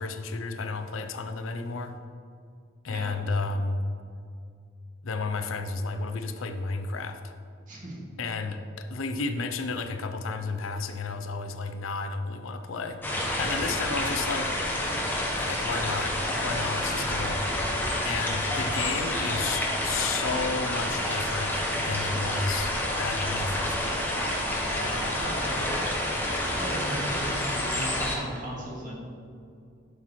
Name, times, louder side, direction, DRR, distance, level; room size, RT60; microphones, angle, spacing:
voice 1, 0.0-1.9 2.8-3.8 5.0-7.2 8.2-14.5 15.4-17.4 18.0-24.2, left 4 dB, 75° left, 7 dB, 0.5 m, -32 dB
voice 2, 7.7-8.0 24.6-29.1, equal, 40° right, -4 dB, 2.0 m, -37 dB
sound 1, 13.0-28.2, left 1 dB, 10° left, 1.0 m, -29 dB
Wind instrument woodwind instrument, 19.3-27.5, right 10 dB, 75° right, 0.7 m, -45 dB
sound 2, 20.4-23.1 24.4-25.6, left 2 dB, 55° left, 1.2 m, -48 dB
11.0 x 5.7 x 3.2 m, 2.4 s
head